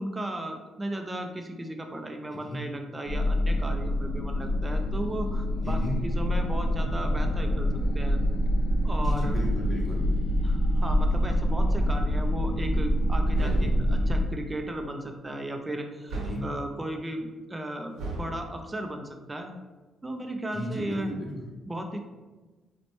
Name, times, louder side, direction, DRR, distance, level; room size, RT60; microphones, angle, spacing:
voice 1, 0.0-7.7 7.9-8.2 8.8-9.4 10.4-16.2 16.4-19.5 20.0-21.1 21.7-22.0, right 1 dB, 20° right, 4 dB, 0.4 m, -35 dB
sound 1, 3.1-14.3, equal, 60° left, 0.5 m, -26 dB
voice 2, 5.6-6.0 9.0-10.0 13.3-13.8 16.1-16.5 20.5-21.5, equal, 10° left, -5 dB, 1.0 m, -34 dB
sound 2, 13.3-13.9 16.1-16.6 18.0-18.4, right 2 dB, 85° right, 0.9 m, -35 dB
4.2 x 2.1 x 2.9 m, 1.2 s
cardioid pair, 90°, 0 cm